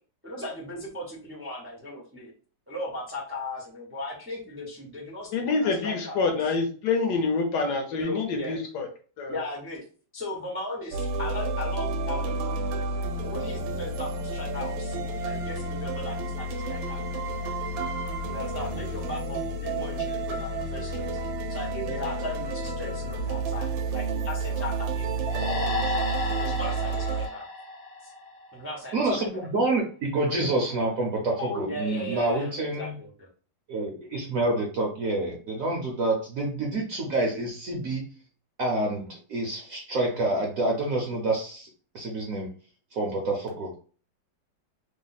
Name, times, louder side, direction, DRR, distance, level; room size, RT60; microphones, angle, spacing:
voice 1, 0.2-2.3 2.7-6.5 7.9-8.6 9.3-9.8 10.1-12.7 13.2-17.0 18.3-21.2 21.5-25.1 25.4-26.1 26.4-27.5 28.0-28.1 28.5-29.5 31.4-33.3, left 1 dB, 15° right, -4 dB, 0.4 m, -37 dB
voice 2, 5.3-8.9 9.2-9.3, left 4 dB, 70° left, 3 dB, 1.2 m, -26 dB
sound 1, 10.9-27.3, right 2 dB, 85° right, 1.3 m, -30 dB
sound 2, 25.3-28.7, left 3 dB, 85° left, 0.5 m, -32 dB
voice 3, 28.9-33.0 33.7-38.0 38.6-41.7 41.9-42.5 42.9-43.7, right 2 dB, 65° right, 0 dB, 0.8 m, -27 dB
3.2 x 2.1 x 4.0 m, 0.40 s
omnidirectional pair, 2.0 m